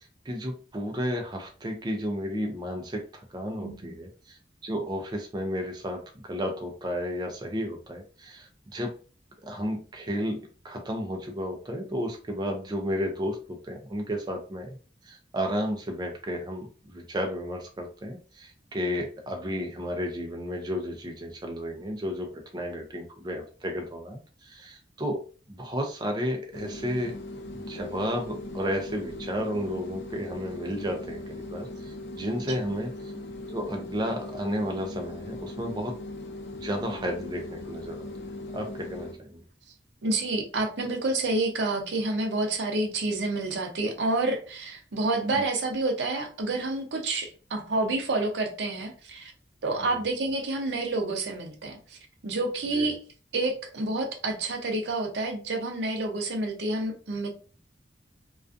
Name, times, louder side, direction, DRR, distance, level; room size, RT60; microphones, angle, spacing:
voice 1, 0.3-8.9 9.4-10.4 10.6-14.8 15.0-25.2 25.5-27.1 27.5-33.1 33.5-36.0 36.5-38.1 38.5-39.4 52.7-52.9, equal, 25° right, 2 dB, 0.4 m, -32 dB
voice 2, 3.6-4.0 32.4-32.7 40.0-49.3 49.6-53.0 53.3-57.3, right 2 dB, 80° right, 4 dB, 0.6 m, -29 dB
sound 1, 26.5-39.2, left 2 dB, 70° left, 0.4 m, -39 dB
2.4 x 2.3 x 2.5 m, 0.38 s
head